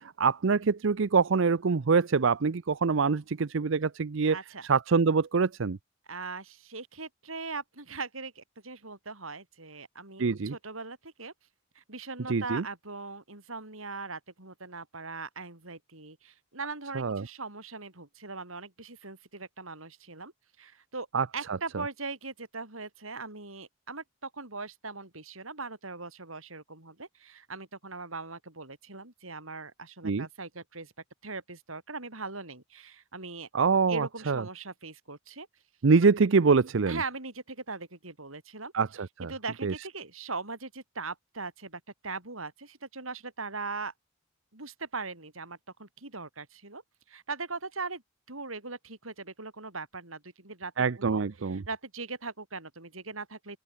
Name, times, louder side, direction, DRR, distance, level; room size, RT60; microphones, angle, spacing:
voice 1, 0.0-4.4 4.7-5.8 10.2-10.5 12.3-12.6 17.0-17.2 21.1-21.3 30.0-30.3 33.5-34.4 35.8-37.0 38.7-39.3 39.6-39.7 50.8-51.6, right 5 dB, 65° right, 0.6 m, -25 dB
voice 2, 4.3-4.7 6.1-11.3 11.7-20.3 20.6-21.1 21.3-30.9 31.2-33.5 33.9-35.5 36.9-38.7 39.2-43.9 44.5-46.8 47.1-48.0 48.3-53.6, right 4 dB, 85° right, 6.7 m, -40 dB
open air
head